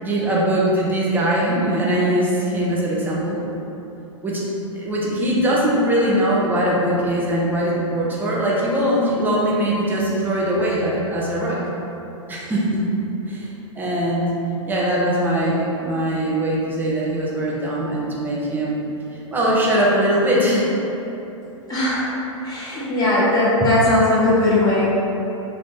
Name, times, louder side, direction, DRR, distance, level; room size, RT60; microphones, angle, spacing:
voice 1, 0.0-3.4 4.2-4.4 4.7-11.6 12.3-12.8 13.3-13.5 13.8-14.3 14.7-18.8 19.3-20.7, right 1 dB, 10° right, -6 dB, 0.8 m, -21 dB
voice 2, 21.7-22.1 22.4-24.9, left 2 dB, 20° left, -9 dB, 1.4 m, -18 dB
3.7 x 2.6 x 4.2 m, 3.0 s
hypercardioid pair, 110°, 17 cm